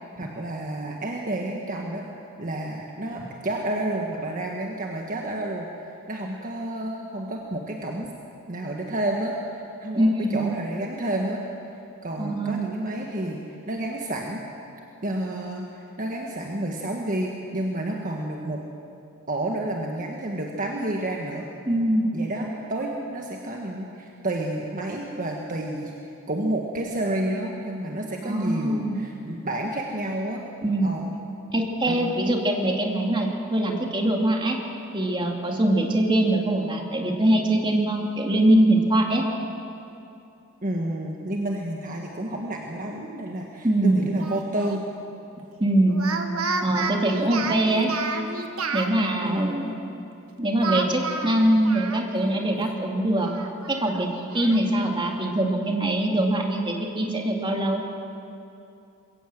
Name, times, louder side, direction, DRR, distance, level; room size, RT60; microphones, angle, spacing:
voice 1, 0.2-2.0 2.4-5.7 6.1-8.1 8.5-11.4 12.0-14.4 15.0-18.6 19.3-21.5 22.1-30.4 30.8-31.1 31.8-32.4 40.6-44.8 49.2-49.6, right 1 dB, 40° right, 0 dB, 1.5 m, -30 dB
voice 2, 10.0-10.5 12.2-12.6 21.7-22.0 28.2-29.0 30.6-30.9 31.5-34.6 34.9-39.2 43.6-44.0 45.6-46.0 46.6-47.9 48.7-49.7 50.4-53.3 53.7-54.1 54.3-57.8, right 1 dB, 25° right, 1 dB, 2.3 m, -23 dB
Speech, 44.2-44.8 45.9-48.9 50.6-52.3 52.7-52.8 53.2-54.6, right 4 dB, 85° right, 1.6 m, -31 dB
22.5 x 17.0 x 7.8 m, 2.7 s
head